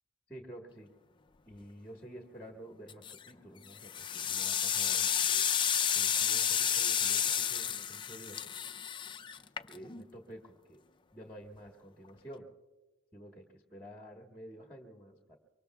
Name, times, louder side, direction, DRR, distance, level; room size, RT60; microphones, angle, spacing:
voice 1, 0.3-0.9 1.5-5.5 5.8-8.7 9.7-10.8 11.1-12.5 13.1-15.4, equal, 10° left, 2 dB, 1.3 m, -50 dB
sound 1, 2.9-3.3 3.8-10.0, left 8 dB, 25° left, 0.4 m, -31 dB
25.0 x 24.0 x 2.3 m, 1.2 s
head